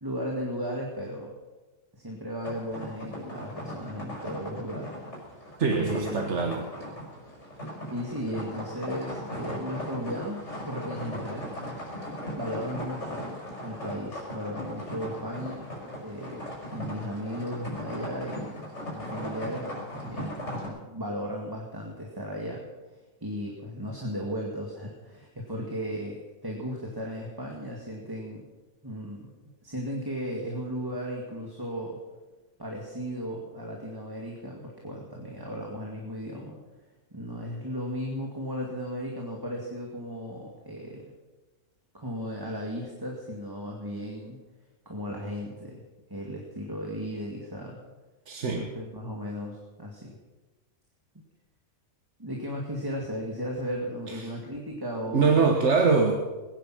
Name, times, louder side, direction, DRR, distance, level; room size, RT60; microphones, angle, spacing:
voice 1, 0.0-1.3 1.9-4.9 5.7-6.3 7.8-11.6 12.3-15.7 16.0-22.7 23.2-28.5 28.8-29.3 29.6-32.0 32.6-36.6 37.1-41.1 41.9-44.4 44.9-45.8 46.1-47.8 48.5-50.1 52.2-55.5, equal, 15° right, -1 dB, 2.1 m, -35 dB
sound 1, 2.4-20.7, equal, 55° left, 5.7 m, -38 dB
voice 2, 5.6-6.7 48.3-48.7 54.1-54.2 55.1-56.2, right 4 dB, 55° right, 3 dB, 1.6 m, -23 dB
21.0 x 10.0 x 6.2 m, 1.2 s
omnidirectional pair, 1.4 m